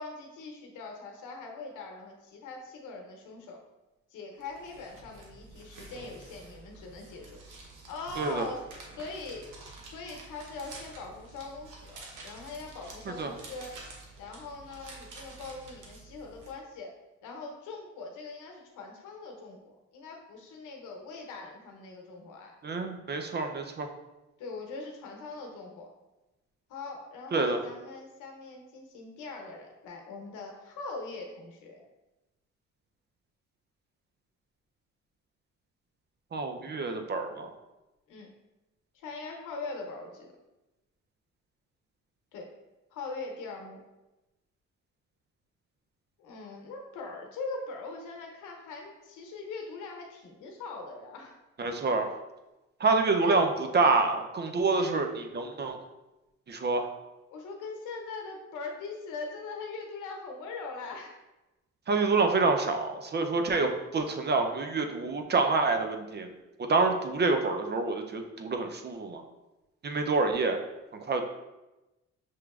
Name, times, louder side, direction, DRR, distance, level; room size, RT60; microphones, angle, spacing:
voice 1, 0.0-3.6 4.1-7.4 7.9-8.6 9.0-9.5 9.9-13.7 14.2-16.9 17.2-22.5 24.4-25.9 26.7-31.9 36.6-37.0 38.1-38.3 38.9-40.3 42.3-42.5 42.9-43.8 46.2-51.4 53.2-53.3 54.7-55.0 57.3-61.2, left 3 dB, 85° left, 1 dB, 0.8 m, -41 dB
sound 1, 4.4-16.5, right 3 dB, 85° right, 0.8 m, -49 dB
voice 2, 22.6-23.9 27.3-27.6 36.3-37.5 51.6-52.1 52.8-53.5 53.7-55.8 56.5-56.9 61.9-66.3 66.7-69.2 69.8-70.6 71.0-71.3, right 3 dB, 35° right, 5 dB, 0.5 m, -27 dB
6.0 x 3.0 x 2.3 m, 1.0 s
cardioid pair, 90°, 30 cm